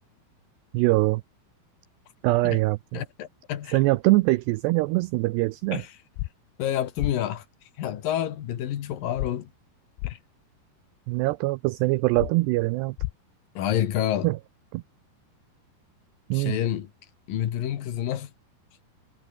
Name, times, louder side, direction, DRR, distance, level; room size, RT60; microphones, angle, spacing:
voice 1, 0.7-1.2 2.2-2.8 3.7-5.8 11.1-13.0 14.2-14.4 14.7-14.8 16.3-16.5, right 21 dB, 85° right, 2.4 m, -23 dB
voice 2, 2.9-3.8 5.7-6.0 6.6-7.4 7.8-9.5 10.0-10.2 13.5-14.3 16.3-16.9 17.3-18.3, left 11 dB, 60° left, 2.9 m, -28 dB
sound 1, 6.2-6.3 7.0-7.1 9.2-9.3 10.0-10.1 12.2-12.3 13.0-13.1, left 21 dB, 80° left, 2.6 m, -30 dB
omnidirectional pair, 5.4 m